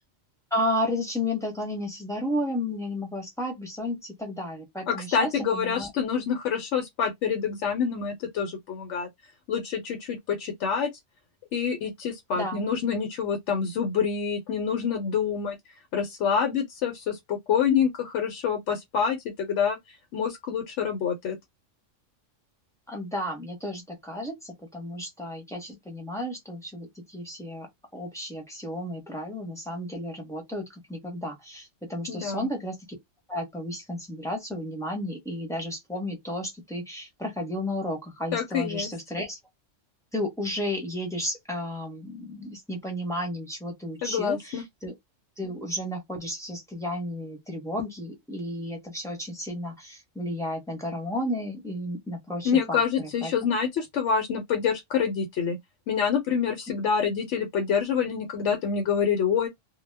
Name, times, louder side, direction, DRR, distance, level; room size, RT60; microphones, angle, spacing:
voice 1, 0.5-5.9 12.4-12.6 22.9-27.7 27.9-32.7 33.3-39.4 40.1-44.9 45.4-53.3, left 1 dB, 5° left, 0.7 m, -33 dB
voice 2, 4.9-9.1 9.5-10.9 11.5-15.6 15.9-21.4 32.1-32.5 38.3-38.9 44.0-44.6 52.4-55.6 55.9-59.5, left 7 dB, 70° left, 0.9 m, -27 dB
2.2 x 2.0 x 3.2 m
omnidirectional pair, 1.3 m